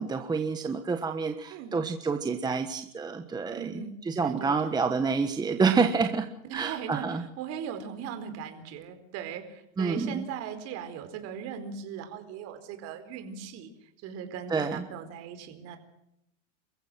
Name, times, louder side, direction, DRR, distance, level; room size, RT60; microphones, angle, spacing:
voice 1, 0.0-3.8 4.1-7.2 9.8-10.2 14.5-14.8, right 5 dB, 10° right, 7 dB, 1.2 m, -28 dB
voice 2, 3.5-3.9 4.2-4.8 6.5-15.8, right 7 dB, 45° right, 7 dB, 4.5 m, -39 dB
27.5 x 15.5 x 6.3 m, 0.78 s
supercardioid pair, 135°, 36 cm